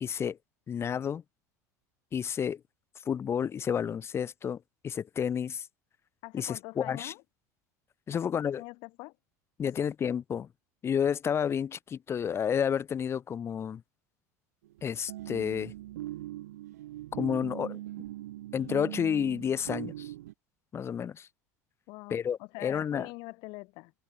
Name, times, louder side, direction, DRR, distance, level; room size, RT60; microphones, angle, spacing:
voice 1, 0.0-0.4 0.7-1.2 2.1-2.6 3.1-5.7 6.3-7.1 8.1-8.6 9.6-10.5 10.8-13.8 14.8-15.7 17.1-17.8 18.5-20.1 20.7-21.3 22.1-23.1, left 8 dB, 30° left, 0.5 m, -30 dB
voice 2, 6.2-7.2 8.1-8.3 8.6-9.2 9.6-9.9 21.9-23.9, left 26 dB, 65° left, 2.0 m, -44 dB
sound 1, 14.6-20.3, right 15 dB, 85° right, 0.6 m, -41 dB
hypercardioid pair, 85°, 9 cm